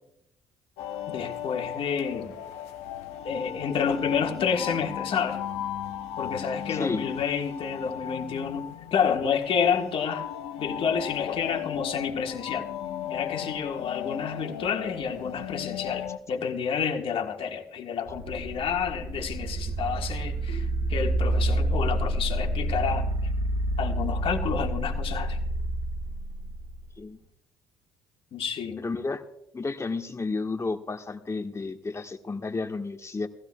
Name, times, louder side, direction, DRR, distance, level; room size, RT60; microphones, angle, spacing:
sound 1, 0.8-16.2, left 10 dB, 70° left, 1.0 m, -36 dB
voice 1, 1.1-2.3 3.2-5.4 6.2-10.3 10.6-12.7 13.1-23.1 23.8-25.4 28.3-28.8, left 7 dB, 55° left, 1.7 m, -29 dB
voice 2, 6.7-7.0 27.0-27.2 28.8-29.2 29.5-33.3, left 3 dB, 25° left, 1.5 m, -32 dB
sound 2, 18.1-26.9, right 1 dB, 50° right, 1.4 m, -28 dB
sound 3, 20.5-23.9, right 3 dB, 85° right, 3.0 m, -52 dB
19.5 x 15.5 x 2.4 m
hypercardioid pair, 55°, 11 cm